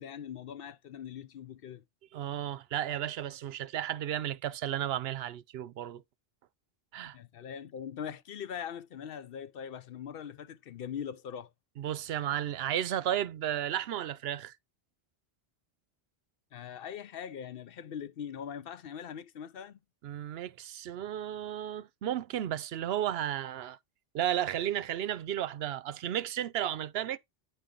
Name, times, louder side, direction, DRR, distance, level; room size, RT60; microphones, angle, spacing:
voice 1, 0.0-1.8 7.1-11.5 16.5-19.8, left 8 dB, 70° left, 0.8 m, -41 dB
voice 2, 2.1-6.0 6.9-7.2 11.8-14.5 20.0-23.8 24.1-27.2, right 11 dB, 80° right, 0.8 m, -33 dB
9.7 x 4.2 x 3.8 m
omnidirectional pair, 1.0 m